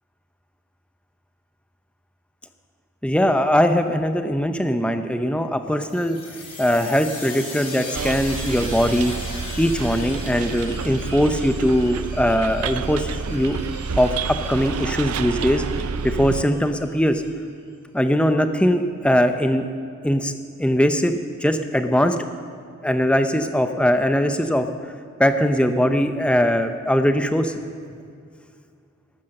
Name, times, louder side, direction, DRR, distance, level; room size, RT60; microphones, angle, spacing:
voice 1, 3.0-6.2 6.6-9.1 9.6-13.6 14.0-15.6 16.0-17.2 17.9-19.7 20.0-20.3 20.6-22.2 22.8-24.7 25.2-27.5, equal, 5° left, 8 dB, 0.6 m, -20 dB
sound 1, 5.9-17.3, left 1 dB, 25° left, 4.3 m, -38 dB
Bus, 7.9-16.4, right 5 dB, 85° right, 0.5 m, -29 dB
13.5 x 12.0 x 6.5 m, 2.3 s
head